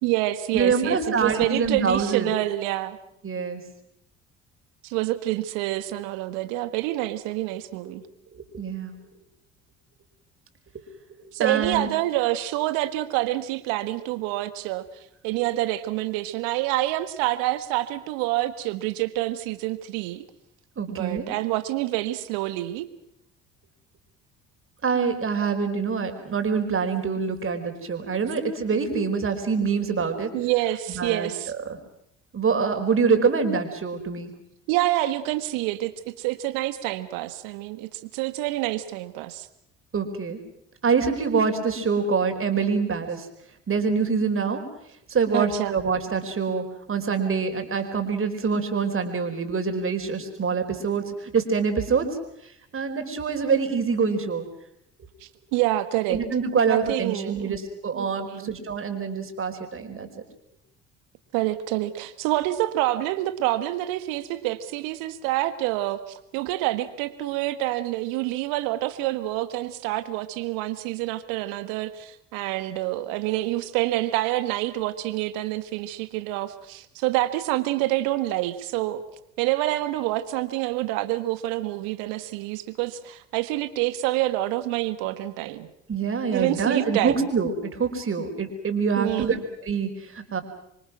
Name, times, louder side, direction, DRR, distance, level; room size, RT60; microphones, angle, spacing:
voice 1, 0.0-3.0 4.8-8.0 11.3-14.9 15.2-20.2 20.9-22.9 30.3-31.5 34.7-39.5 45.3-45.8 55.2-56.2 56.7-57.6 57.9-58.5 61.3-79.0 79.4-85.7 86.3-87.2 89.0-89.4, right 16 dB, 70° right, 12 dB, 1.8 m, -27 dB
voice 2, 0.5-2.3 3.2-3.6 7.8-7.9 8.3-9.0 11.4-11.9 20.8-21.3 24.8-30.3 30.9-31.3 31.7-31.8 32.3-34.3 39.9-40.4 40.8-43.3 43.7-44.6 45.1-52.0 52.7-54.5 56.1-60.1 85.9-90.4, right 5 dB, 35° right, 6 dB, 4.9 m, -25 dB
27.5 x 24.5 x 6.1 m, 0.78 s
hypercardioid pair, 55°, 35 cm